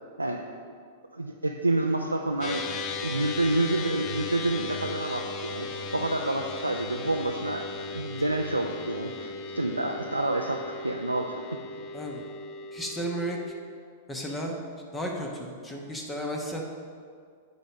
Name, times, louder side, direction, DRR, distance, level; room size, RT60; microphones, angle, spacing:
voice 1, 1.1-2.6 3.0-7.7 7.9-11.4, right 2 dB, 90° right, 1 dB, 0.4 m, -28 dB
sound 1, 2.4-13.5, left 3 dB, 35° left, 0.7 m, -37 dB
voice 2, 12.7-13.4 14.1-14.5 14.9-16.6, equal, 10° left, 0 dB, 1.0 m, -33 dB
8.0 x 5.2 x 5.7 m, 2.1 s
figure-of-eight pair, 100°, 0 cm